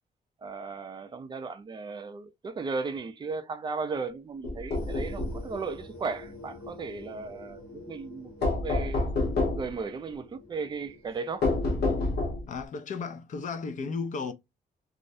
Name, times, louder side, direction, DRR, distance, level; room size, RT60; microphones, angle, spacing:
voice 1, 0.4-9.0 9.5-11.5, right 4 dB, 30° right, 0.3 m, -36 dB
sound 1, 4.4-5.4 8.4-9.7 11.4-12.6, left 2 dB, 90° left, 0.7 m, -28 dB
sound 2, 4.7-11.9, left 2 dB, 70° left, 1.0 m, -47 dB
voice 2, 12.5-14.3, left 4 dB, 50° left, 0.4 m, -34 dB
2.3 x 2.1 x 2.6 m
wide cardioid pair, 130°, 16 cm